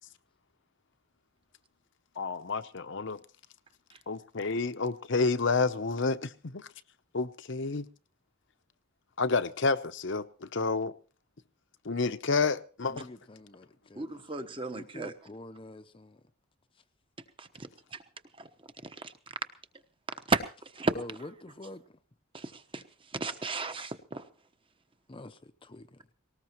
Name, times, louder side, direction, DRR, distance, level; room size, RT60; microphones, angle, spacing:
voice 1, 2.2-3.2 4.1-6.6 7.1-7.8 9.2-10.9 11.9-13.1, left 4 dB, 60° left, 0.8 m, -29 dB
voice 2, 12.8-14.1 14.4-16.2 20.9-22.0 25.1-26.0, left 1 dB, 25° left, 0.7 m, -46 dB
voice 3, 14.0-15.1 17.4-18.0 18.4-18.5 19.0-19.1 20.3-20.4 20.7-20.9 22.3-22.8 23.1-24.2, right 3 dB, 25° right, 1.1 m, -33 dB
19.0 x 19.0 x 3.0 m
head